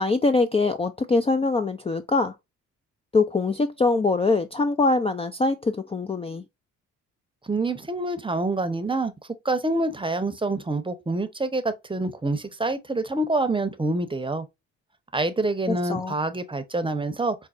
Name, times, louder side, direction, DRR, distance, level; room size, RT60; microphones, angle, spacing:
voice 1, 0.0-2.3 3.1-6.4 15.7-16.1, left 3 dB, 15° left, 0.4 m, -23 dB
voice 2, 7.4-9.1 9.4-14.5 15.1-17.4, right 2 dB, 15° right, 0.8 m, -26 dB
5.3 x 2.1 x 2.3 m
supercardioid pair, 55°, 34 cm